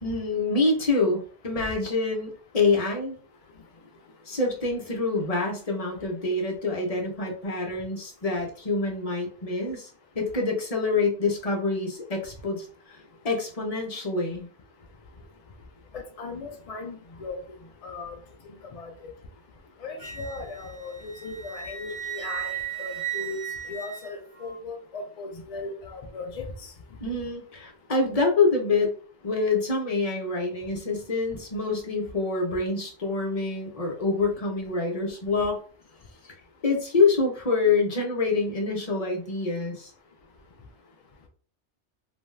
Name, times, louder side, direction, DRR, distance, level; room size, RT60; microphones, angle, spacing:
voice 1, 0.0-3.2 4.3-9.9 10.2-13.0 13.2-14.5 27.0-28.9 29.2-35.6 36.2-36.3 36.6-39.9, left 3 dB, 40° left, 1 dB, 0.7 m, -26 dB
voice 2, 15.9-17.4 17.8-18.2 18.7-19.1 19.8-23.4 23.7-26.5, left 3 dB, 70° left, 3 dB, 0.3 m, -37 dB
Wind instrument woodwind instrument, 20.0-24.6, right 9 dB, 50° right, 0.3 m, -36 dB
2.6 x 2.2 x 3.1 m, 0.42 s
omnidirectional pair, 1.2 m